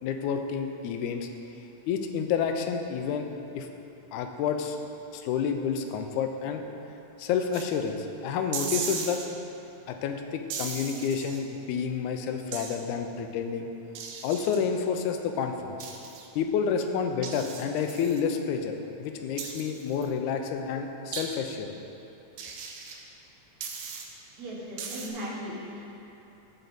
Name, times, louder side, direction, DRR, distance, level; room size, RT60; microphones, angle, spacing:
voice 1, 0.0-1.3 1.9-3.3 3.5-3.7 4.1-4.8 5.1-6.6 7.2-9.2 9.9-13.7 14.2-15.8 16.4-18.7 19.0-21.8, left 6 dB, 90° left, 5 dB, 2.0 m, -29 dB
sound 1, 7.5-7.7 8.5-9.3 10.5-11.4 12.5-12.8 14.0-14.6 15.8-16.3 17.2-18.2 19.4-20.0 21.1-21.2 22.4-23.0 23.6-24.0 24.8-25.1, right 6 dB, 90° right, 2.3 m, -37 dB
voice 2, 24.3-25.9, equal, 70° right, -5 dB, 2.6 m, -37 dB
13.5 x 4.6 x 4.0 m, 3.0 s
omnidirectional pair, 3.4 m